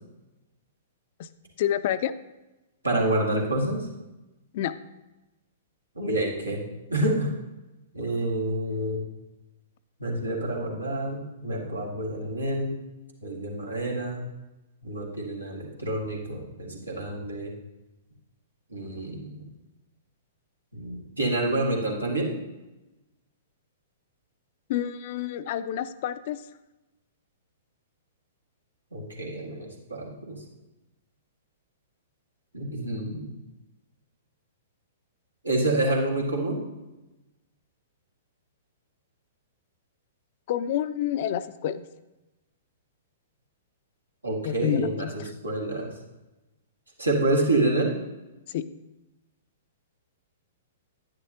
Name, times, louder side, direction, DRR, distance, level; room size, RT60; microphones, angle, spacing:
voice 1, 1.6-2.1 4.5-4.7 24.7-26.4 40.5-41.8 44.4-45.3 48.5-48.6, left 10 dB, 45° left, 13 dB, 0.4 m, -28 dB
voice 2, 2.8-3.9 6.0-6.6 6.9-7.3 7.9-9.0 10.0-12.7 13.2-14.2 14.8-17.5 18.7-19.4 20.7-22.3 28.9-30.4 32.5-33.3 35.4-36.6 44.2-45.9 47.0-47.9, right 1 dB, 85° right, -1 dB, 1.9 m, -28 dB
10.5 x 9.7 x 2.8 m, 1.0 s
figure-of-eight pair, 110°, 0 cm